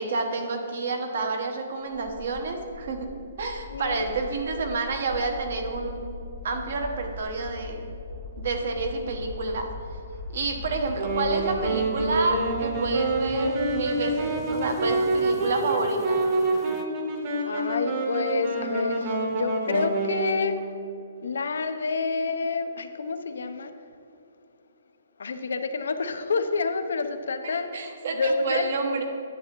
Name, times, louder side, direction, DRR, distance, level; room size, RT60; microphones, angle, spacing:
voice 1, 0.0-3.1 3.4-6.0 6.4-7.9 8.4-9.7 10.3-16.2 27.7-29.0, right 3 dB, 55° right, 4 dB, 1.0 m, -29 dB
sound 1, 1.9-16.8, left 4 dB, 15° left, 0.3 m, -41 dB
voice 2, 3.7-4.0 17.4-20.6 21.2-23.7 25.2-27.7 28.1-28.6, left 4 dB, 85° left, 8 dB, 0.6 m, -28 dB
Wind instrument woodwind instrument, 10.9-20.6, right 2 dB, 30° right, 1.1 m, -27 dB
10.0 x 7.6 x 3.0 m, 2.7 s
hypercardioid pair, 175°, 0 cm